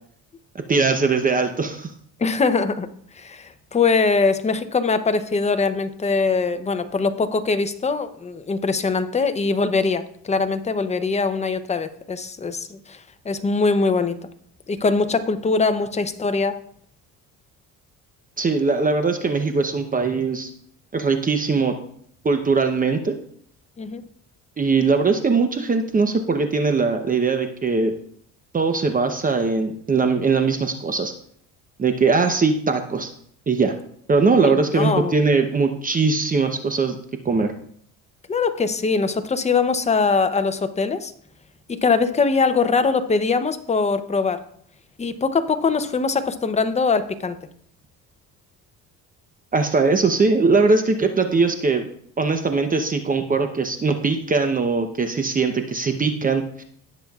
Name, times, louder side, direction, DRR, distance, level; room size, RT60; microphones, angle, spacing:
voice 1, 0.5-1.9 18.4-20.5 20.9-21.7 22.2-23.2 24.6-27.9 28.5-31.1 31.8-33.1 33.5-33.7 34.1-37.0 37.2-37.5 49.5-51.9 52.2-56.6, right 4 dB, 25° right, 6 dB, 0.8 m, -20 dB
voice 2, 2.2-2.9 3.2-13.0 13.2-14.2 14.7-16.6 23.8-24.0 34.4-35.2 38.3-41.1 41.7-44.4 45.0-47.4, left 4 dB, 20° left, 10 dB, 0.7 m, -22 dB
18.0 x 7.0 x 2.4 m, 0.63 s
cardioid pair, 120°, 35 cm